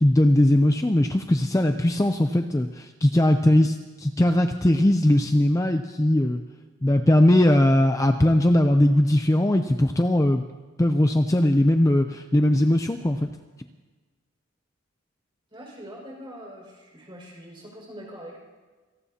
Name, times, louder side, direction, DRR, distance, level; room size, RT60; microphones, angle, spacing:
voice 1, 0.0-6.4 6.8-10.4 10.8-13.3, left 1 dB, 15° left, 6 dB, 0.5 m, -20 dB
voice 2, 15.5-18.4, equal, 25° right, -1 dB, 5.3 m, -43 dB
27.0 x 18.5 x 2.8 m, 1.3 s
head